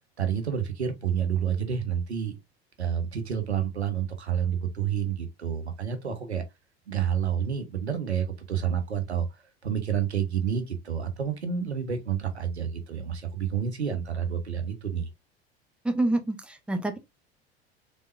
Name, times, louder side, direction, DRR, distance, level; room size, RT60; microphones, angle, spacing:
voice 1, 0.2-2.3 2.8-6.4 6.9-9.3 9.6-15.1, right 8 dB, 85° right, 0.9 m, -29 dB
voice 2, 15.8-17.0, right 2 dB, 5° right, 0.9 m, -27 dB
3.9 x 3.6 x 2.6 m
figure-of-eight pair, 70°, 32 cm